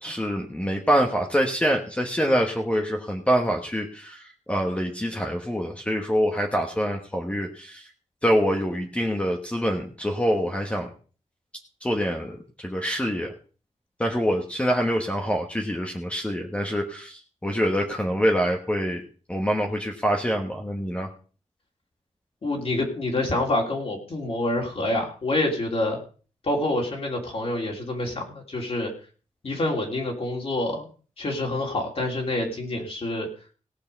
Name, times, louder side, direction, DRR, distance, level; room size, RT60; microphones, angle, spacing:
voice 1, 0.0-7.9 8.2-10.9 11.8-13.3 14.0-19.0 19.3-21.1, equal, 10° left, 1 dB, 1.3 m, -25 dB
voice 2, 22.4-26.0 26.4-28.9 29.4-30.9 31.2-33.3, left 1 dB, 50° left, -1 dB, 3.1 m, -27 dB
18.0 x 6.7 x 5.3 m, 0.38 s
wide cardioid pair, 160°, 13 cm